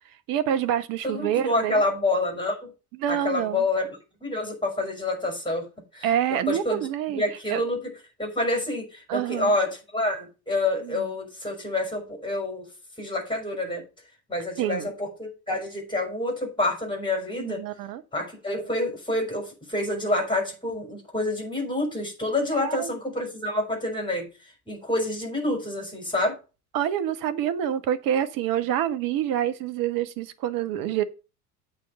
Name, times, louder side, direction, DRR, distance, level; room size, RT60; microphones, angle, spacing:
voice 1, 0.3-1.8 3.0-3.6 6.0-7.2 7.5-7.6 9.1-9.5 10.8-11.1 14.6-14.9 17.4-18.0 22.6-22.9 26.7-31.0, right 10 dB, 50° right, 1.1 m, -27 dB
voice 2, 1.0-2.7 3.1-5.7 5.9-6.9 7.1-7.9 8.2-12.6 13.0-13.8 14.3-17.6 18.1-24.3 24.7-26.4, left 2 dB, 10° left, 5.1 m, -28 dB
8.3 x 4.6 x 6.6 m
figure-of-eight pair, 70°, 44 cm